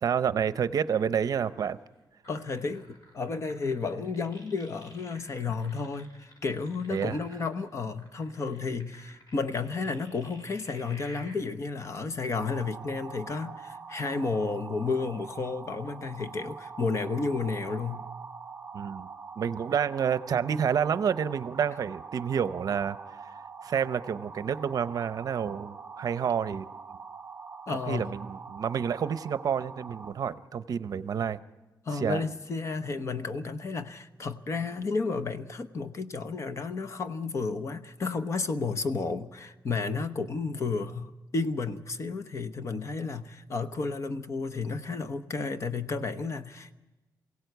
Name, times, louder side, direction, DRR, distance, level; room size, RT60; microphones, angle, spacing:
voice 1, 0.0-1.8 6.9-7.2 18.7-19.1 19.4-23.0 23.6-26.7 27.7-31.4 31.9-32.2, right 7 dB, 60° right, 0.7 m, -29 dB
sound 1, 2.2-11.4, left 1 dB, 65° left, 6.2 m, -52 dB
voice 2, 2.3-18.1 27.7-28.2 31.8-46.7, left 4 dB, 45° left, 0.9 m, -32 dB
sound 2, 12.5-30.1, right 5 dB, 35° right, 1.3 m, -44 dB
23.0 x 16.5 x 8.0 m
wide cardioid pair, 155°, 7 cm